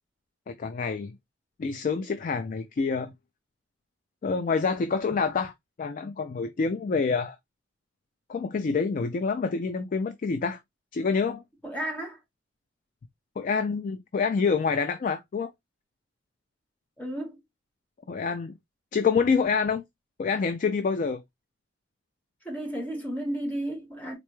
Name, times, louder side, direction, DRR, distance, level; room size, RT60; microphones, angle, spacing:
voice 1, 0.5-1.2 1.6-3.1 4.2-5.5 5.8-7.4 8.3-10.6 10.9-11.4 13.4-15.5 18.1-18.5 18.9-19.8 20.2-21.2, left 5 dB, 45° left, 0.3 m, -27 dB
voice 2, 11.6-12.2 17.0-17.4 22.4-24.2, right 1 dB, 10° left, 1.1 m, -33 dB
4.1 x 2.2 x 3.0 m
head